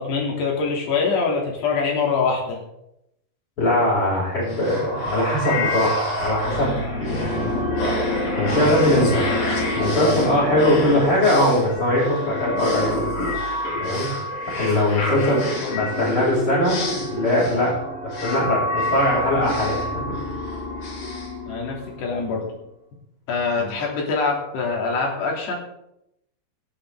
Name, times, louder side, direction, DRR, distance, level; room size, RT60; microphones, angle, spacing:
voice 1, 0.0-2.6 15.1-16.0 21.5-22.5 23.3-25.5, left 4 dB, 75° left, -1 dB, 5.3 m, -24 dB
voice 2, 3.6-7.6 8.4-9.3 9.7-13.1 13.8-14.1 14.5-17.8 18.2-19.8, left 1 dB, 30° left, -10 dB, 7.5 m, -21 dB
sound 1, 4.5-22.1, left 1 dB, 55° left, 6.2 m, -27 dB
19.0 x 10.0 x 3.9 m, 0.82 s
omnidirectional pair, 4.8 m